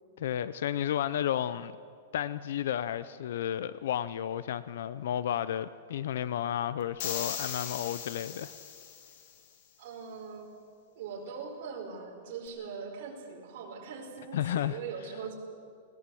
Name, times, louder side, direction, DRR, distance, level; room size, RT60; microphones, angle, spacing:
voice 1, 0.2-1.7 2.1-8.5 14.3-14.8, left 10 dB, 60° left, 16 dB, 0.5 m, -32 dB
sound 1, 7.0-9.3, left 8 dB, 40° left, 2.0 m, -38 dB
voice 2, 9.8-10.5 10.9-15.3, right 5 dB, 40° right, -1 dB, 4.7 m, -41 dB
21.0 x 19.0 x 7.7 m, 2.2 s
supercardioid pair, 175°, 0 cm